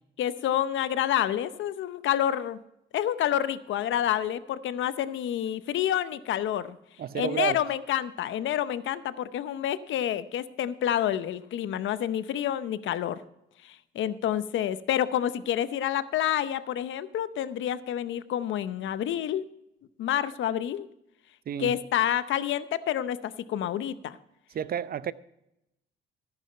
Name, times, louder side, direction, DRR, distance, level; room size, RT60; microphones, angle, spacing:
voice 1, 0.2-2.6 2.9-6.8 7.1-13.2 13.6-19.5 20.0-20.9 21.6-24.2, left 11 dB, 75° left, 14 dB, 0.8 m, -28 dB
voice 2, 7.0-7.6 21.5-21.8 24.5-25.1, right 9 dB, 50° right, 16 dB, 0.6 m, -30 dB
14.0 x 11.0 x 4.3 m, 0.85 s
cardioid pair, 90°, 20 cm